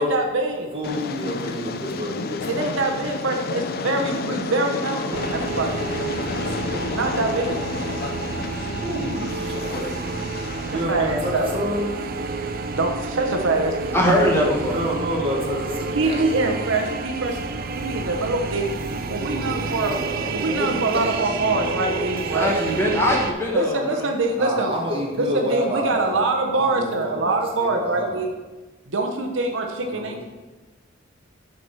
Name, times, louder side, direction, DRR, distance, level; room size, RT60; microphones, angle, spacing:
voice 1, 0.0-0.7 2.5-5.9 6.7-7.6 10.9-11.5 12.7-14.3 15.9-17.4 17.8-18.7 19.1-20.0 20.3-22.5 23.5-24.7 25.2-28.3 28.9-30.2, right 2 dB, 70° right, 3 dB, 0.8 m, -24 dB
voice 2, 0.7-3.1 4.2-4.3 6.1-6.8 8.6-10.0 10.7-11.9 14.6-16.7 18.7-22.9 24.3-26.2 26.5-28.2 29.8-30.2, equal, 30° right, -2 dB, 1.5 m, -30 dB
Train, 0.8-10.8, left 4 dB, 50° left, 0.4 m, -31 dB
sound 1, 5.1-23.3, right 4 dB, 45° right, 0.5 m, -30 dB
voice 3, 13.9-14.8 22.3-24.0, equal, 10° left, -2 dB, 1.1 m, -21 dB
6.1 x 4.6 x 5.5 m, 1.2 s
head